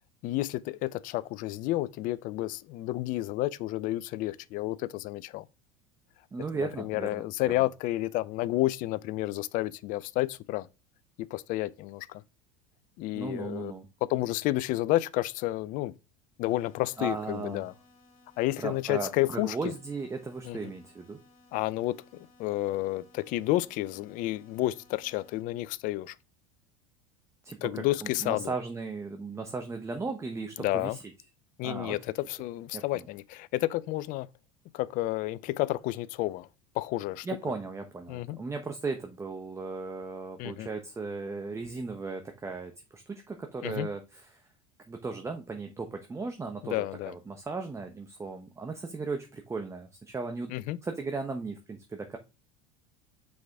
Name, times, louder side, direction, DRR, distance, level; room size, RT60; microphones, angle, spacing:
voice 1, 0.2-5.4 6.5-10.7 11.2-12.2 13.0-13.7 14.1-15.9 16.4-17.7 18.4-19.6 20.4-20.6 21.5-26.2 27.6-28.5 30.6-31.0 31.6-34.3 34.7-36.5 36.7-37.3 38.1-38.4 40.4-40.7 43.6-43.9 46.6-47.1 50.5-50.8, left 17 dB, 55° left, 0.5 m, -31 dB
voice 2, 6.3-7.7 13.1-13.9 17.0-17.7 18.6-21.2 27.4-31.0 31.6-32.0 32.7-33.1 37.2-44.4 44.9-50.5 50.8-52.2, right 4 dB, 15° right, 0.9 m, -36 dB
sound 1, 16.4-25.4, left 3 dB, 80° left, 2.4 m, -61 dB
6.3 x 4.8 x 3.4 m
hypercardioid pair, 90°, 17 cm